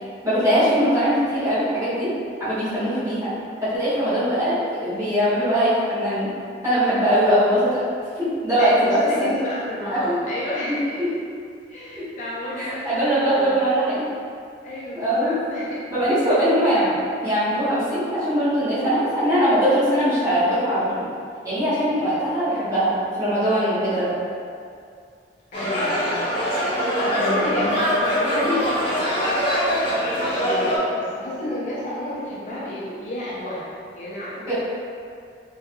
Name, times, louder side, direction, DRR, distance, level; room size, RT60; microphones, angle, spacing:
voice 1, 0.2-2.1 2.4-3.3 3.6-6.3 6.6-7.8 8.2-9.3 9.9-10.2 10.7-10.8 12.0-12.1 12.5-14.1 14.9-15.3 15.9-21.1 21.4-24.1 27.2-27.8 28.3-28.6 34.5-34.6, equal, 20° right, -13 dB, 1.5 m, -21 dB
voice 2, 8.6-11.0 11.7-13.6 14.6-15.8 16.2-16.4 23.8-24.3 25.5-26.4 27.0-29.1 30.1-34.5, left 1 dB, 45° left, -7 dB, 0.5 m, -31 dB
sound 1, 25.5-30.8, equal, 30° left, 1.2 m, -23 dB
3.5 x 3.3 x 2.3 m, 2.3 s
head